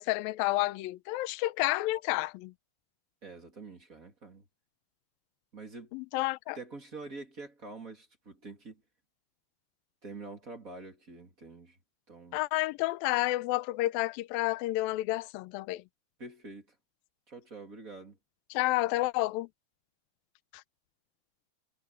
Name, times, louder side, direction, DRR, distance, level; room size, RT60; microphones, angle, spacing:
voice 1, 0.0-2.5 5.9-6.6 12.3-15.8 18.5-19.5 20.5-20.6, left 19 dB, 85° left, 2.1 m, -30 dB
voice 2, 3.2-4.4 5.5-5.9 6.5-8.8 10.0-11.8 12.1-12.4 16.2-16.7 17.3-18.2, right 3 dB, 25° right, 2.6 m, -46 dB
omnidirectional pair, 4.9 m